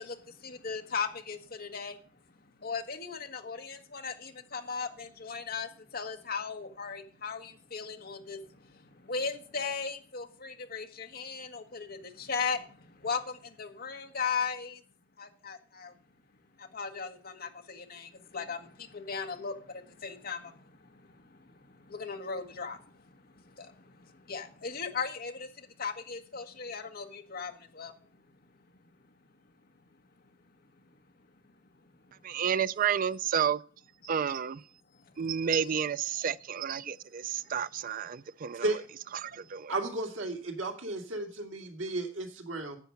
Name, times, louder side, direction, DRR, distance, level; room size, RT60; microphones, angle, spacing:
voice 1, 0.0-2.0 2.6-14.8 15.2-15.9 16.6-27.9 28.4-29.2 29.8-30.0 34.0-34.4 35.0-35.1 35.6-35.7, left 5 dB, 50° left, 1.4 m, -38 dB
voice 2, 32.2-33.6 34.0-34.6 35.2-38.6 39.2-39.7, right 8 dB, 45° right, 0.4 m, -30 dB
voice 3, 39.7-42.8, right 2 dB, 80° right, 2.4 m, -34 dB
10.5 x 8.1 x 5.7 m
head